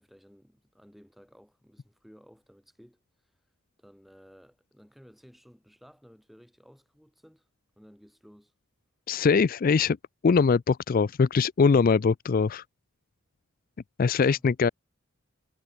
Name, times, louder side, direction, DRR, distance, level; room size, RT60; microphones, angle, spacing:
voice 1, 0.0-3.3 3.8-7.5 7.8-8.5 14.3-14.5, equal, ahead, 3.8 m, -56 dB
voice 2, 9.1-10.0 10.2-12.6 14.0-14.7, left 5 dB, 45° left, 0.4 m, -22 dB
head